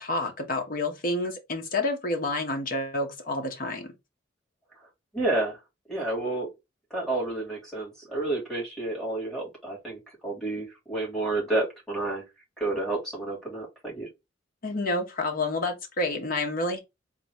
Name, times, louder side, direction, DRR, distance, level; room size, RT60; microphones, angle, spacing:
voice 1, 0.0-3.9 14.6-16.8, left 2 dB, 50° left, 1.1 m, -29 dB
voice 2, 5.1-5.6 5.9-6.5 6.9-12.2 12.6-14.1, right 2 dB, 5° left, 2.6 m, -30 dB
3.8 x 2.8 x 3.3 m
head